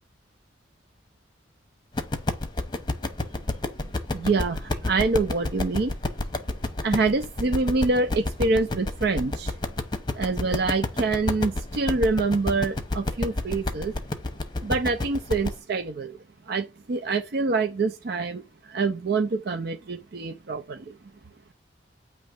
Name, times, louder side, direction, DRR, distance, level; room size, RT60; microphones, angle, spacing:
sound 1, 1.9-15.5, left 2 dB, 25° left, 0.9 m, -29 dB
voice 1, 4.1-4.6 4.8-5.9 6.8-9.5 10.2-13.9 14.6-16.1 16.5-18.4 18.7-20.8, right 3 dB, 55° right, 0.5 m, -25 dB
9.1 x 3.1 x 5.1 m
head